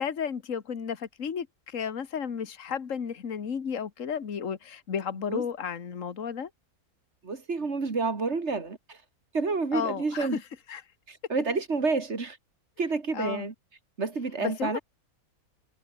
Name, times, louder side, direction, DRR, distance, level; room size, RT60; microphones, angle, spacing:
voice 1, 0.0-6.5 9.7-10.4 10.7-10.8 13.1-13.5 14.4-14.8, left 7 dB, 60° left, 1.9 m, -33 dB
voice 2, 7.2-9.0 9.3-10.4 11.1-12.4 12.8-13.5 14.0-14.8, right 4 dB, 50° right, 2.5 m, -29 dB
omnidirectional pair, 1.6 m